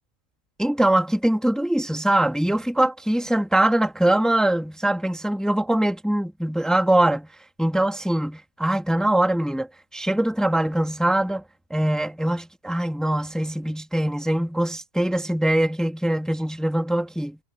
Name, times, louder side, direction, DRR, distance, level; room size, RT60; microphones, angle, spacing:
voice 1, 0.6-7.3 7.6-9.7 9.9-11.4 11.7-17.4, right 1 dB, ahead, 1.8 m, -22 dB
omnidirectional pair, 1.1 m